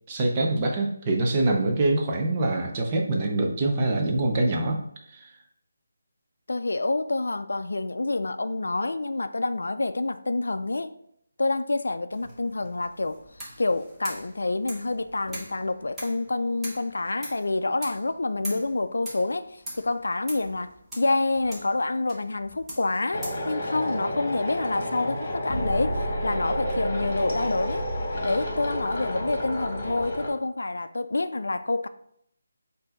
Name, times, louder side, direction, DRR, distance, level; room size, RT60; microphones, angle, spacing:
voice 1, 0.1-4.8 5.1-5.3, right 2 dB, 25° right, 1 dB, 0.6 m, -24 dB
voice 2, 6.5-11.0 11.4-13.2 13.6-27.9 28.2-31.9, left 2 dB, 80° left, 11 dB, 0.3 m, -27 dB
sound 1, 12.1-26.7, equal, 5° right, 1.0 m, -44 dB
sound 2, 23.1-30.3, equal, 40° left, 1.3 m, -30 dB
4.4 x 2.7 x 4.3 m, 0.70 s
figure-of-eight pair, 165°, 0 cm